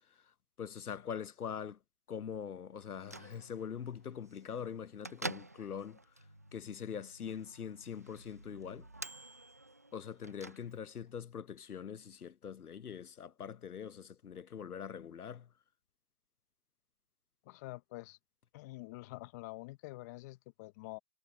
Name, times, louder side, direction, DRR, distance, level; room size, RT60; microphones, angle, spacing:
voice 1, 0.6-1.8 2.1-6.0 6.5-8.9 9.9-15.5, left 7 dB, 60° left, 1.0 m, -43 dB
Bell / Microwave oven, 2.8-11.1, right 2 dB, 10° right, 0.6 m, -49 dB
voice 2, 17.4-18.2 18.5-21.0, left 21 dB, 10° left, 0.9 m, -47 dB
figure-of-eight pair, 145°, 50 cm